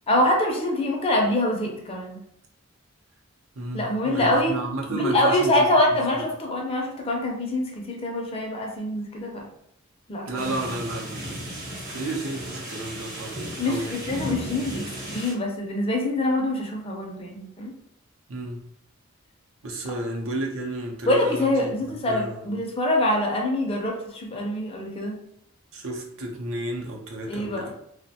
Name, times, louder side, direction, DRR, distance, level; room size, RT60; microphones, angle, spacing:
voice 1, 0.1-2.2 3.7-4.6 4.9-9.4 10.1-10.3 13.6-17.7 21.0-25.2 27.3-27.7, left 1 dB, 30° left, 1 dB, 0.4 m, -25 dB
voice 2, 3.5-6.3 10.3-11.6 11.9-14.0 18.3-18.6 19.6-22.5 25.7-27.7, right 1 dB, 80° right, -1 dB, 0.6 m, -32 dB
sound 1, 10.3-15.3, equal, 45° right, 0.9 m, -35 dB
2.4 x 2.1 x 2.7 m, 0.71 s
head